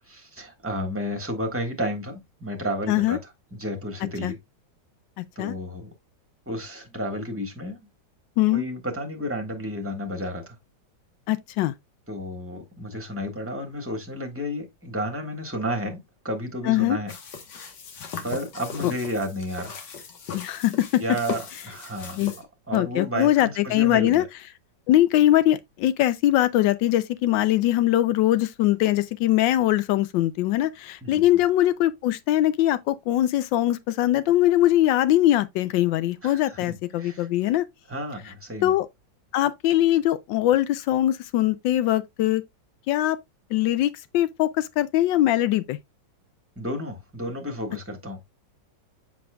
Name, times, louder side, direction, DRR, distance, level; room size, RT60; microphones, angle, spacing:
voice 1, 0.1-3.2 3.5-4.4 5.3-5.9 6.5-7.9 8.5-10.5 12.1-17.1 18.2-19.7 21.0-22.2 22.7-24.2 31.0-31.2 36.2-37.3 37.9-38.7 46.6-48.2, equal, 10° right, 1.4 m, -32 dB
voice 2, 2.9-3.2 4.2-4.3 5.2-5.5 8.4-8.6 11.3-11.7 16.6-17.0 18.8-18.9 20.3-21.0 22.2-22.3 22.7-24.3 24.9-37.7 38.6-38.9 39.3-42.4 42.9-43.2 43.5-45.8, left 14 dB, 85° left, 1.3 m, -22 dB
sound 1, 17.1-22.4, left 5 dB, 70° left, 1.9 m, -38 dB
7.3 x 5.9 x 2.3 m
omnidirectional pair, 2.0 m